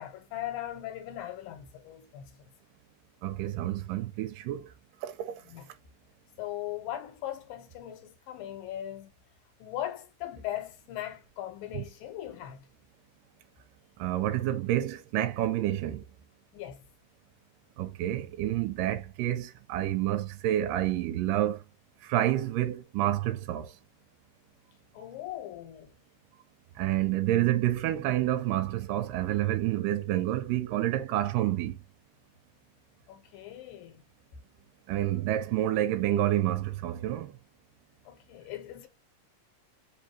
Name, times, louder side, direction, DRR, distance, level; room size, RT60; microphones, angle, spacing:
voice 1, 0.0-2.2 5.4-5.7 6.4-9.1 9.6-12.6 16.5-16.8 24.9-25.9 33.1-34.0 38.1-38.9, left 12 dB, 80° left, 2.6 m, -39 dB
voice 2, 3.2-4.6 5.0-5.1 11.7-11.8 14.0-16.0 17.8-21.6 22.1-23.7 26.8-31.8 34.9-37.3, right 13 dB, 85° right, 2.1 m, -28 dB
5.2 x 2.7 x 3.0 m
omnidirectional pair, 4.0 m